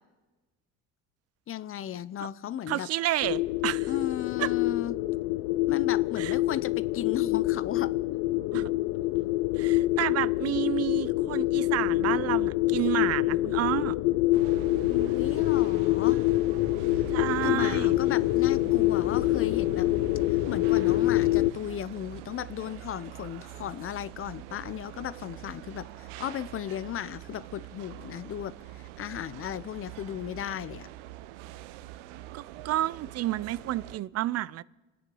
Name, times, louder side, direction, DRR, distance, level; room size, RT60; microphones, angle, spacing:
voice 1, 1.5-2.9 3.9-5.0 5.7-7.9 14.9-16.2 16.9-17.0 17.4-19.9 20.3-30.9, left 10 dB, 40° left, 0.7 m, -35 dB
voice 2, 2.7-3.9 4.4-4.5 6.2-6.3 8.5-8.7 9.6-13.9 17.1-17.9 32.3-34.6, right 14 dB, 45° right, 0.5 m, -30 dB
sound 1, 3.2-21.5, left 18 dB, 75° left, 0.5 m, -26 dB
sound 2, 14.3-34.0, right 14 dB, 85° right, 0.7 m, -44 dB
28.0 x 9.5 x 5.4 m
supercardioid pair, 90°, 35 cm